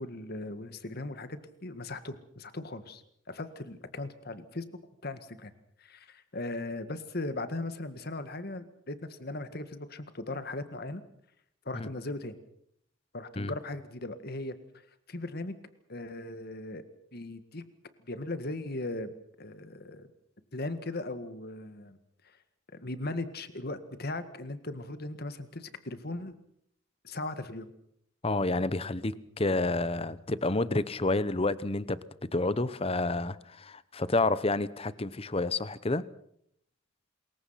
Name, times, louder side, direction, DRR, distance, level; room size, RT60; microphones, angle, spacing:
voice 1, 0.0-3.0 3.3-4.7 5.0-5.5 5.8-11.0 11.7-12.4 13.1-14.6 15.1-15.6 15.9-16.8 17.1-17.6 18.0-20.1 20.5-22.0 22.2-22.4 22.7-26.3 27.0-27.7, left 2 dB, 50° left, 11 dB, 1.8 m, -38 dB
voice 2, 28.2-36.0, left 2 dB, 30° left, 16 dB, 0.9 m, -29 dB
27.0 x 22.0 x 5.8 m, 0.70 s
head